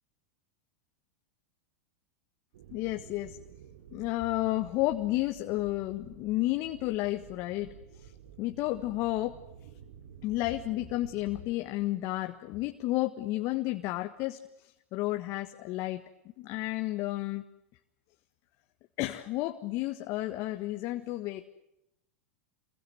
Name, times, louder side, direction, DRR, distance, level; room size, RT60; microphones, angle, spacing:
sound 1, 2.5-11.5, right 8 dB, 75° right, 1.9 m, -51 dB
voice 1, 2.7-3.4 3.9-8.1 8.4-9.3 10.2-16.0 16.4-17.4 19.0-21.4, left 17 dB, 50° left, 7 dB, 1.5 m, -32 dB
28.0 x 22.5 x 8.0 m, 0.86 s
hypercardioid pair, 105°, 7 cm